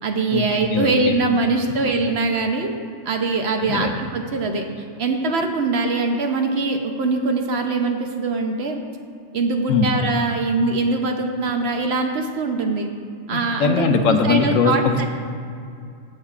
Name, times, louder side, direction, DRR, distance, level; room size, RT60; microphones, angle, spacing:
voice 1, 0.0-2.8 3.0-4.7 5.0-8.8 9.3-12.9 13.3-15.1, right 3 dB, 60° right, 4 dB, 0.9 m, -22 dB
voice 2, 0.7-1.2 3.6-3.9 9.7-9.9 13.3-15.1, left 5 dB, 80° left, 5 dB, 1.1 m, -20 dB
15.0 x 6.5 x 2.4 m, 2.4 s
omnidirectional pair, 1.4 m